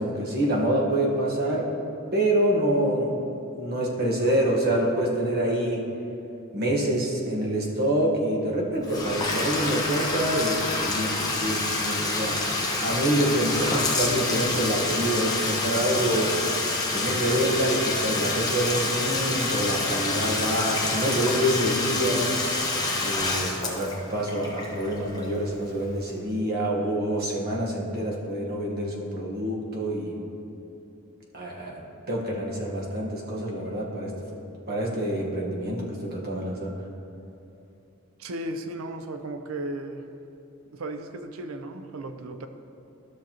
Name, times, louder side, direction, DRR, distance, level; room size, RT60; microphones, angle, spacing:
voice 1, 0.0-1.7 2.1-3.1 3.5-5.8 6.5-12.4 12.8-16.3 16.9-22.3 23.0-30.2 31.3-34.1 34.7-36.7, right 1 dB, 50° right, -2 dB, 1.3 m, -26 dB
Bathtub (filling or washing), 8.8-25.6, left 2 dB, 20° left, 0.9 m, -27 dB
voice 2, 38.2-40.1 40.7-42.5, right 1 dB, 80° right, 7 dB, 0.5 m, -35 dB
13.0 x 6.4 x 2.9 m, 2.8 s
head